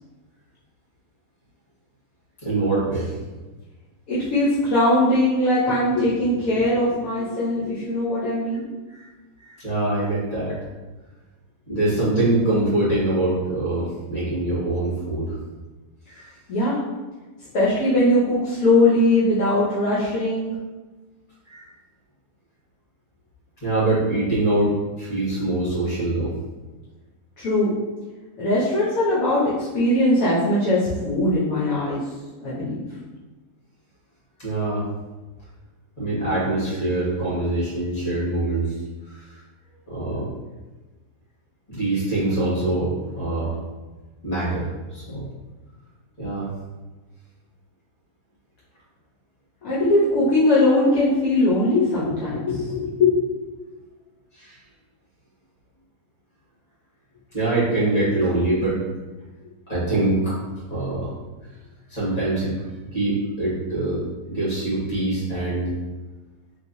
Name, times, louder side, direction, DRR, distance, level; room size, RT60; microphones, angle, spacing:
voice 1, 2.4-3.1 8.9-9.1 9.4-10.5 11.7-15.3 16.1-16.3 21.5-21.7 23.6-26.3 34.4-34.8 36.0-38.7 39.1-39.4 39.9-40.2 41.7-43.5 44.2-44.6 44.9-45.3 46.2-46.5 54.4-54.6 57.3-58.8 59.7-60.3 60.7-61.1 61.9-62.5 62.9-64.0 64.3-65.7, right 2 dB, 30° left, -8 dB, 1.7 m, -24 dB
voice 2, 4.1-8.6 16.5-16.8 17.5-20.5 27.4-27.7 28.4-32.0 32.4-32.8 49.6-53.1, left 1 dB, 65° left, -8 dB, 1.1 m, -20 dB
3.3 x 3.1 x 2.6 m, 1.2 s
omnidirectional pair, 1.7 m